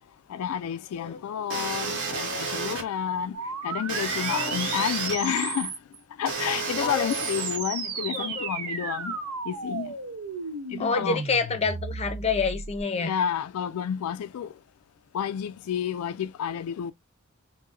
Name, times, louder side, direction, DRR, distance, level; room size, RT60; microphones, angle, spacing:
voice 1, 0.3-5.8 6.2-9.2 9.5-10.0 10.7-11.2 13.0-14.5 15.1-16.9, left 8 dB, 80° left, 0.3 m, -30 dB
sound 1, 1.5-2.8 3.9-5.2 6.3-7.6, right 4 dB, 55° right, 1.3 m, -31 dB
sound 2, 3.3-6.0 6.9-12.8, right 4 dB, 90° right, 0.8 m, -34 dB
voice 2, 6.8-7.2 8.1-8.5 10.8-13.2, left 4 dB, 30° left, 0.5 m, -28 dB
4.6 x 2.1 x 2.5 m
head